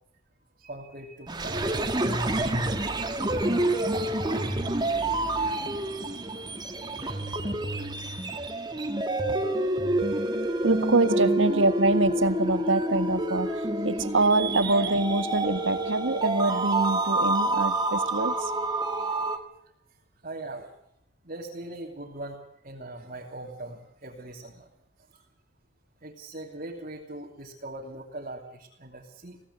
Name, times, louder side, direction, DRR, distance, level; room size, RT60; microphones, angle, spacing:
voice 1, 0.6-2.1 6.0-6.5 9.2-9.3 10.1-10.6 11.1-11.2 13.8-13.9 18.9-19.1 19.6-19.7 20.2-20.7 21.2-24.7 25.1-25.2 26.0-29.4, right 2 dB, 40° right, -3 dB, 3.0 m, -41 dB
sound 1, 1.3-19.4, right 1 dB, 20° right, 1.9 m, -28 dB
voice 2, 10.6-18.3, right 2 dB, 70° right, 11 dB, 1.7 m, -25 dB
23.0 x 17.0 x 8.2 m, 0.75 s
head